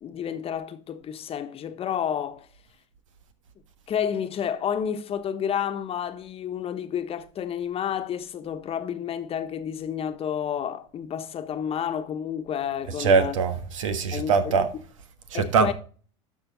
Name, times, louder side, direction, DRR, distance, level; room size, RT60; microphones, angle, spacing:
voice 1, 0.0-2.5 3.9-13.3 14.1-14.6 15.3-15.7, left 8 dB, 35° left, 1.2 m, -30 dB
voice 2, 12.9-14.7 15.3-15.7, right 5 dB, 80° right, 1.4 m, -22 dB
12.5 x 5.5 x 4.0 m
hypercardioid pair, 90°, 16 cm